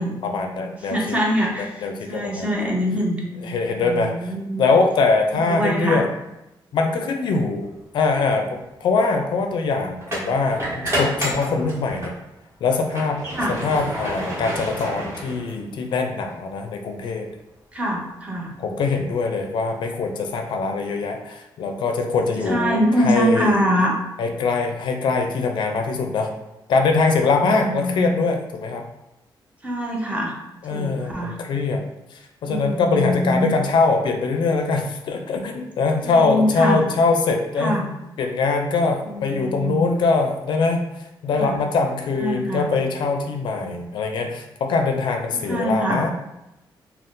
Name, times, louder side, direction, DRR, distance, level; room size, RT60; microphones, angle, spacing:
voice 1, 0.2-1.2 1.6-2.7 3.4-4.3 4.6-6.1 6.7-7.7 7.9-12.1 12.6-13.2 13.5-17.3 18.6-23.6 24.2-26.3 26.7-28.8 30.6-31.8 32.1-37.9 38.2-40.9 41.2-46.1, left 4 dB, 70° left, 4 dB, 0.4 m, -22 dB
voice 2, 0.9-3.5 3.8-4.7 5.3-6.0 13.3-13.6 17.7-18.5 22.5-23.9 27.5-28.2 29.6-30.3 30.7-31.3 32.5-33.5 36.0-36.8 37.6-37.9 39.0-39.9 41.3-41.6 42.2-42.7 45.5-46.0, equal, 15° right, -2 dB, 0.6 m, -24 dB
sound 1, 7.9-8.1 10.0-12.2 12.6-15.8, equal, 35° right, 1.1 m, -29 dB
2.5 x 2.3 x 3.6 m, 0.92 s
wide cardioid pair, 165°, 8 cm